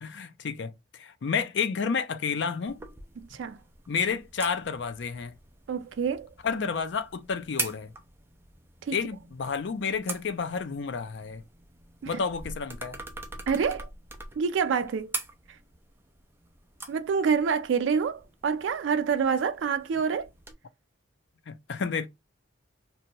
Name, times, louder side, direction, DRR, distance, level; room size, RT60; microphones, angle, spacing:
voice 1, 0.0-2.8 3.9-5.3 6.4-7.9 8.9-11.4 12.1-13.0 21.5-22.1, left 5 dB, 65° left, 0.4 m, -30 dB
sound 1, 2.7-20.5, right 3 dB, 10° right, 0.4 m, -43 dB
voice 2, 3.2-3.6 5.7-6.3 8.8-8.9 12.0-12.2 13.5-13.9 14.4-15.1 16.9-20.3, right 6 dB, 80° right, 0.3 m, -27 dB
2.7 x 2.2 x 2.7 m
head